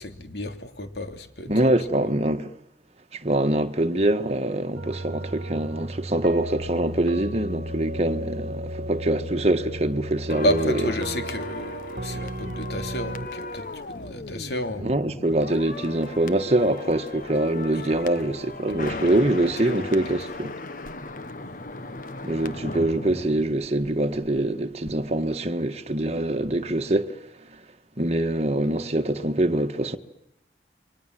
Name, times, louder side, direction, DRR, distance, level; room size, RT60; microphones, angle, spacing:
voice 1, 0.0-1.7 2.0-2.1 10.4-15.0 17.8-18.3 18.7-20.6, left 1 dB, 65° left, 3.2 m, -32 dB
voice 2, 1.5-2.5 3.1-10.7 14.8-20.5 22.2-27.1 28.0-30.0, right 1 dB, 35° right, 1.7 m, -24 dB
sound 1, 4.7-13.3, right 1 dB, 55° right, 1.7 m, -34 dB
sound 2, 10.3-24.4 24.7-24.9, left 2 dB, 50° left, 1.6 m, -37 dB
29.5 x 23.5 x 7.7 m
head